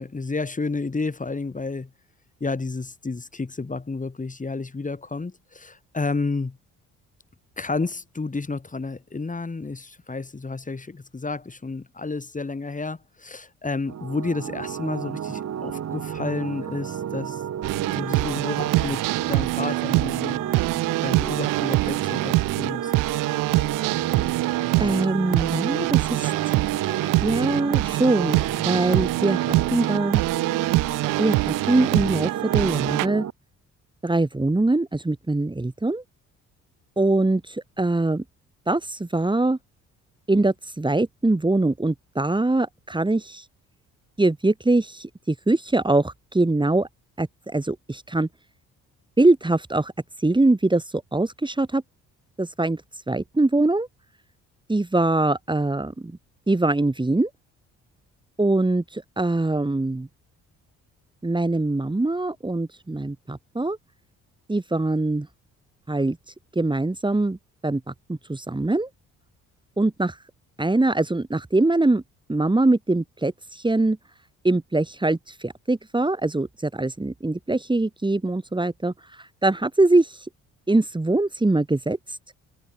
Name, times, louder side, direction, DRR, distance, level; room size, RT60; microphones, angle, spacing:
voice 1, 0.0-1.9 2.4-6.6 7.6-17.4 17.9-20.4 21.0-22.9, left 3 dB, 25° left, 4.6 m, -31 dB
sound 1, 13.9-33.3, right 9 dB, 55° right, 3.3 m, -32 dB
sound 2, 17.6-33.1, right 21 dB, 90° right, 2.7 m, -24 dB
voice 2, 24.8-26.3 27.0-30.2 31.2-33.3 34.0-36.0 37.0-38.2 38.7-39.6 40.3-43.4 44.2-46.9 47.2-48.3 49.2-49.9 50.2-51.8 52.4-52.8 53.1-53.9 54.7-56.2 56.5-57.3 58.4-60.1 61.2-63.8 64.5-65.3 65.9-66.2 66.5-67.4 67.6-68.9 69.8-70.2 70.6-72.0 72.3-74.0 74.4-80.3 80.7-82.2, right 2 dB, 15° right, 3.3 m, -23 dB
supercardioid pair, 70°, 32 cm